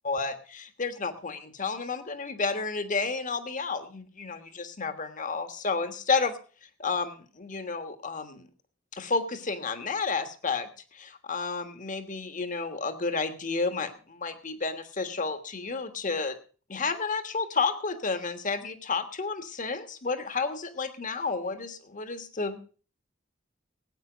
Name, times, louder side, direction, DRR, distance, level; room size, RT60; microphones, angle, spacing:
voice 1, 0.0-6.3 6.8-8.5 8.9-16.4 16.7-22.6, left 4 dB, 40° left, 9 dB, 1.4 m, -31 dB
18.0 x 8.9 x 5.1 m, 0.39 s
head